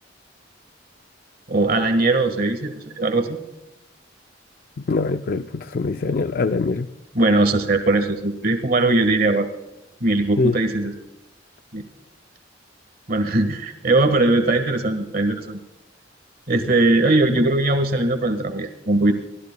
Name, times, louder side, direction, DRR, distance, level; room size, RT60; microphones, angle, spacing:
voice 1, 1.5-3.4 7.1-9.5 10.0-10.9 11.7-11.8 13.1-15.6 16.5-19.1, right 2 dB, 50° right, 1.5 m, -20 dB
voice 2, 4.9-6.9 10.4-10.6, left 3 dB, 50° left, 0.4 m, -23 dB
24.0 x 16.5 x 2.2 m
head